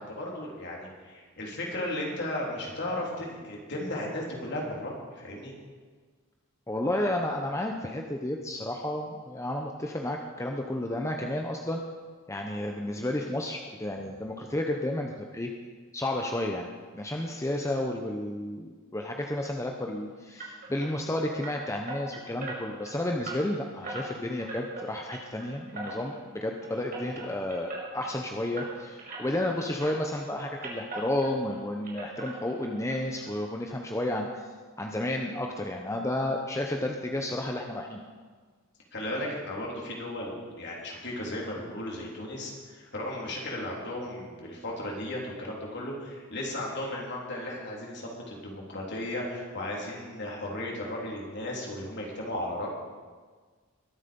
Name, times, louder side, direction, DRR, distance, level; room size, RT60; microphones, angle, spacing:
voice 1, 0.0-5.5 38.9-52.7, left 1 dB, 55° left, -2 dB, 3.8 m, -35 dB
voice 2, 6.7-11.8 12.3-15.5 15.9-16.7 16.9-34.5 34.8-38.0, left 1 dB, 15° left, 2 dB, 0.8 m, -32 dB
sound 1, 20.4-29.5 29.8-31.6 31.8-33.0 33.2-33.3 33.8-33.9 34.2-34.3, right 2 dB, 45° right, 5.4 m, -41 dB
22.0 x 8.2 x 5.4 m, 1.5 s
head